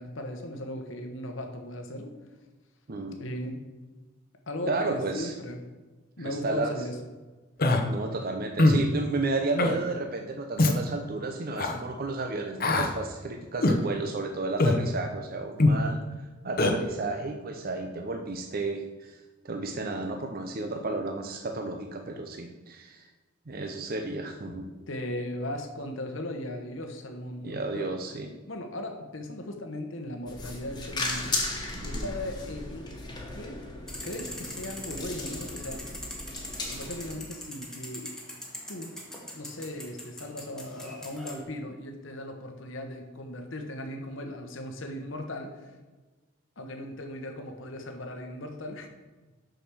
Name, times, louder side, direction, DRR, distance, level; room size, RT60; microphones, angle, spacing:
voice 1, 0.0-2.1 3.2-3.6 4.5-5.6 6.2-6.9 24.9-27.9 28.5-31.3 31.8-32.9 33.3-33.6 34.0-35.8 36.7-38.1 38.7-39.0 39.3-45.6 46.6-48.9, left 1 dB, 70° left, 4 dB, 1.1 m, -37 dB
voice 2, 2.9-3.2 4.7-5.3 6.2-6.8 7.9-16.0 16.4-19.2 19.4-23.1 23.5-24.7 27.4-28.3 31.7-32.1, right 3 dB, 45° right, 4 dB, 0.7 m, -32 dB
Human voice, 7.6-7.8 8.6-8.8 9.6-9.8 10.6-10.8 11.6-11.7 12.6-12.9 13.6-13.8 14.6-14.8 15.6-15.8 16.6-16.7, left 2 dB, 45° left, 0.9 m, -21 dB
sound 1, 30.3-37.1, left 2 dB, 20° left, 1.4 m, -36 dB
sound 2, 33.9-41.4, left 1 dB, 5° left, 1.4 m, -42 dB
6.6 x 6.2 x 6.2 m, 1.2 s
head